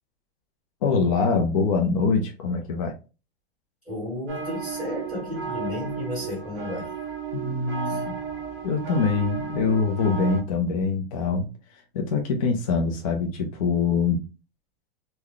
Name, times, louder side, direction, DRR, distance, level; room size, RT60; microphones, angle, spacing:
voice 1, 0.8-2.9 7.3-8.1 8.6-11.5 11.9-14.2, left 4 dB, 35° left, 0.5 m, -24 dB
voice 2, 3.8-6.9 7.8-8.0, left 1 dB, ahead, 1.4 m, -33 dB
sound 1, 4.3-10.4, right 6 dB, 25° right, 0.8 m, -34 dB
3.9 x 2.2 x 3.1 m
supercardioid pair, 175°, 31 cm